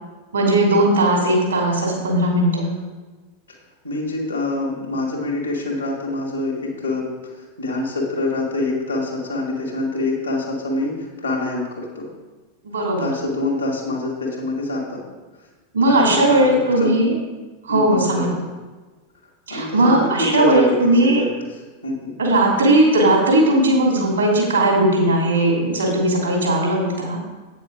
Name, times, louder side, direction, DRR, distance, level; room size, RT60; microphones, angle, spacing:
voice 1, 0.3-2.8 12.6-13.1 15.7-17.1 17.6-18.3 19.5-21.2 22.2-27.2, right 1 dB, 70° right, -1 dB, 2.8 m, -18 dB
voice 2, 3.8-12.1 13.0-15.0 15.8-16.9 17.7-18.4 19.5-21.3 21.8-22.1, left 2 dB, 80° left, -2 dB, 2.0 m, -25 dB
8.6 x 6.5 x 5.0 m, 1.3 s
figure-of-eight pair, 90°, 0 cm